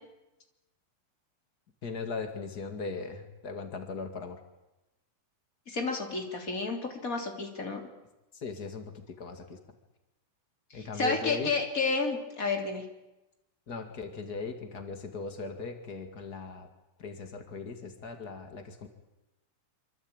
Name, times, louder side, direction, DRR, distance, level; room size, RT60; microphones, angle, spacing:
voice 1, 1.8-4.4 8.3-9.6 10.7-11.5 13.7-16.7 17.0-18.9, left 4 dB, 80° left, 6 dB, 0.8 m, -38 dB
voice 2, 5.7-7.8 10.7-12.8, left 3 dB, 20° left, 3 dB, 2.9 m, -31 dB
26.0 x 25.5 x 9.0 m, 0.99 s
omnidirectional pair, 5.5 m